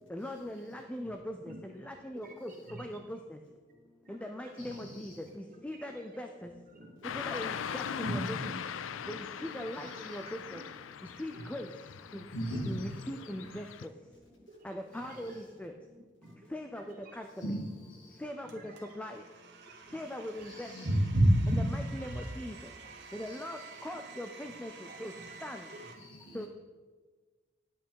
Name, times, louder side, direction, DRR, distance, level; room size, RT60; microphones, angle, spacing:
voice 1, 0.1-2.5 2.8-3.2 4.1-6.5 7.1-8.2 9.1-10.6 11.2-11.7 12.1-12.2 12.7-13.6 14.6-15.7 16.5-16.8 17.2-17.5 18.2-18.5 19.0-19.2 19.9-20.7 21.7-22.6 23.1-24.7 25.0-25.1 25.4-25.6 26.3-26.5, left 1 dB, 5° left, 4 dB, 0.4 m, -40 dB
voice 2, 2.1-3.0 4.0-4.6 5.7-6.2 6.7-7.1 7.5-8.5 9.1-9.2 9.6-10.2 10.5-10.6 11.1-11.5 12.1-12.2 12.8-13.5 14.5-15.5 16.2-16.3 16.8-17.2 18.4-18.9 19.6-21.7 22.0-22.3 23.9-24.1 24.4-25.9, right 1 dB, 45° right, -1 dB, 1.9 m, -35 dB
voice 3, 4.6-5.1 7.6-7.7 9.8-10.1 12.3-12.9 17.4-18.2 20.5-20.9 23.3-23.4 26.0-26.5, equal, 70° left, 0 dB, 2.2 m, -40 dB
Car passing by / Traffic noise roadway noise, 7.0-13.9, left 7 dB, 90° left, 0.4 m, -41 dB
Domestic sounds home sounds, 18.5-25.9, right 4 dB, 65° right, 1.4 m, -51 dB
10.0 x 7.9 x 4.7 m, 1.4 s
head